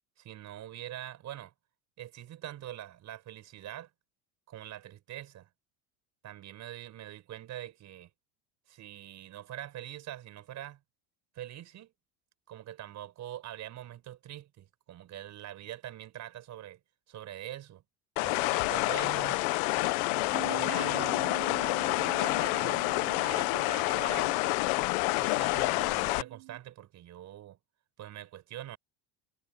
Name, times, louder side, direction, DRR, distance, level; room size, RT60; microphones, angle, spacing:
voice 1, 0.2-1.5 2.0-3.9 4.5-5.5 6.2-8.1 8.7-10.8 11.3-11.9 12.5-16.8 17.1-17.8 18.2-19.5 19.8-21.2 21.8-24.4 25.0-27.6 28.0-28.8, right 12 dB, 40° right, 5.3 m, -44 dB
sound 1, 18.2-26.2, left 24 dB, 75° left, 0.9 m, -28 dB
Bass guitar, 20.3-26.6, right 36 dB, 85° right, 3.3 m, -46 dB
cardioid pair, 150°, 43 cm